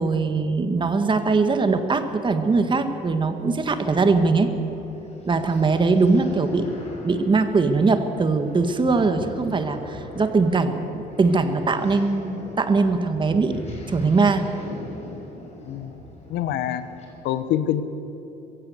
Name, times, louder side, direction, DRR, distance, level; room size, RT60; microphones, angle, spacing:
voice 1, 0.0-4.5 5.3-6.7 7.0-10.8 11.2-14.5, right 4 dB, 30° right, 8 dB, 1.7 m, -21 dB
sound 1, 2.4-17.1, left 2 dB, 40° left, 6.0 m, -41 dB
voice 2, 15.6-15.9 16.3-16.8 17.2-17.8, left 11 dB, 85° left, 12 dB, 1.2 m, -25 dB
22.0 x 16.0 x 8.1 m, 2.9 s
cardioid pair, 110°, 17 cm